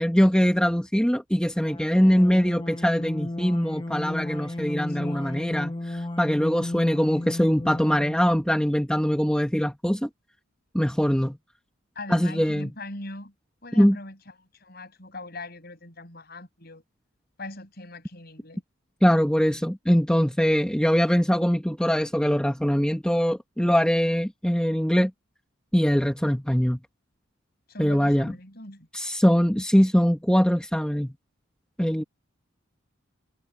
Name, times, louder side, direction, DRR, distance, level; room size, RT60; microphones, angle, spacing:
voice 1, 0.0-10.1 10.7-11.4 12.1-12.7 13.8-14.0 19.0-25.1 25.7-26.8 27.8-28.3 28.9-31.1 31.8-32.0, equal, 5° left, 1.3 m, -22 dB
sound 1, 1.6-8.4, left 1 dB, 25° left, 0.9 m, -34 dB
voice 2, 4.9-5.2 11.9-13.3 13.6-16.8 17.4-18.6 27.7-28.9, left 2 dB, 50° left, 7.9 m, -41 dB
head